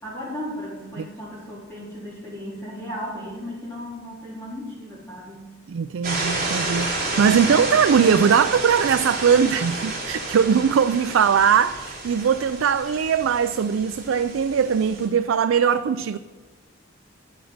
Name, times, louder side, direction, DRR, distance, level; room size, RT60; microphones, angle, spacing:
voice 1, 0.0-5.5, equal, 15° left, 3.7 m, -35 dB
voice 2, 5.7-16.2, right 7 dB, 80° right, 0.4 m, -20 dB
sound 1, 6.0-15.1, right 2 dB, 40° right, 3.8 m, -30 dB
12.0 x 5.3 x 7.9 m
head